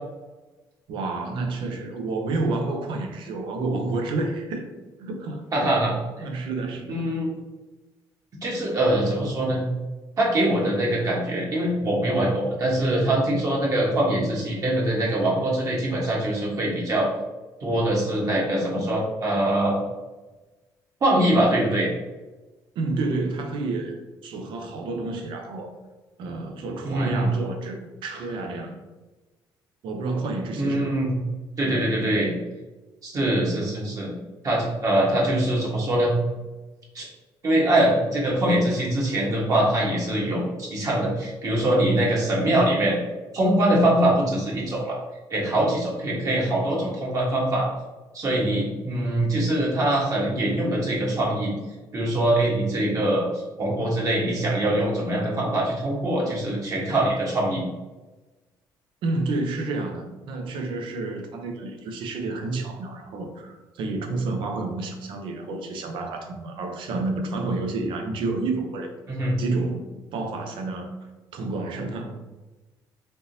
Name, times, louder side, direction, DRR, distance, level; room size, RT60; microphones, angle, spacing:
voice 1, 0.9-4.7 5.0-5.4 6.2-7.1 22.8-25.7 26.2-28.8 29.8-30.9 59.0-68.9 69.4-70.9 71.3-72.2, right 3 dB, 75° right, 4 dB, 0.6 m, -30 dB
voice 2, 5.5-6.3 6.9-7.3 8.4-9.6 10.2-17.1 17.6-19.7 21.0-21.9 26.8-27.3 30.6-31.1 31.6-32.3 33.0-34.1 34.4-36.1 36.9-37.0 37.4-43.0 43.3-45.0 45.3-47.7 48.1-51.5 51.9-57.6 69.1-69.3, right 1 dB, 40° right, -4 dB, 1.2 m, -23 dB
3.5 x 2.7 x 2.6 m, 1.2 s
cardioid pair, 90°, 8 cm